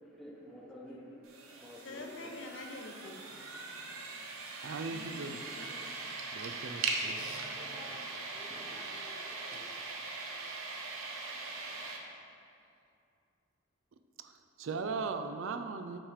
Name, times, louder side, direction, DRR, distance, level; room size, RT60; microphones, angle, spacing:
voice 1, 0.0-2.3 3.0-3.1 7.0-9.7 10.2-10.3, left 1 dB, ahead, -5 dB, 0.9 m, -52 dB
voice 2, 0.9-1.2 1.5-4.3 4.9-5.8, left 2 dB, 60° left, 2 dB, 0.8 m, -48 dB
sound 1, 1.2-12.0, right 3 dB, 85° right, 0.8 m, -40 dB
voice 3, 4.6-5.4 6.3-7.2 14.2-16.0, right 4 dB, 70° right, 8 dB, 0.4 m, -38 dB
6.1 x 4.8 x 6.5 m, 2.5 s
head